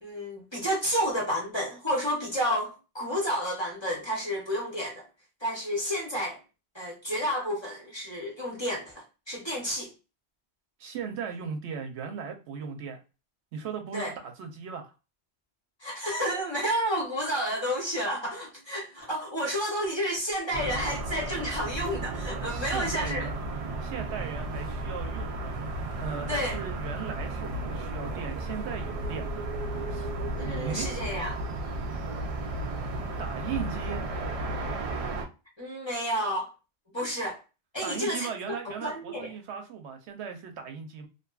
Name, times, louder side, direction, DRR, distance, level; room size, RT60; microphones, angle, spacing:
voice 1, 0.0-5.1 5.4-6.4 6.7-9.9 13.9-14.1 15.8-23.3 26.3-26.6 30.4-31.4 35.6-36.5 36.9-37.4 37.7-39.3, equal, 30° left, 0.6 m, -31 dB
voice 2, 10.8-13.0 13.5-14.9 22.5-23.4 23.8-25.6 26.0-29.4 29.9-30.1 30.5-31.0 33.2-34.1 37.8-41.1, right 6 dB, 85° right, 0.9 m, -37 dB
sound 1, 20.5-35.3, right 2 dB, 70° right, 0.3 m, -34 dB
2.6 x 2.4 x 2.3 m
omnidirectional pair, 1.1 m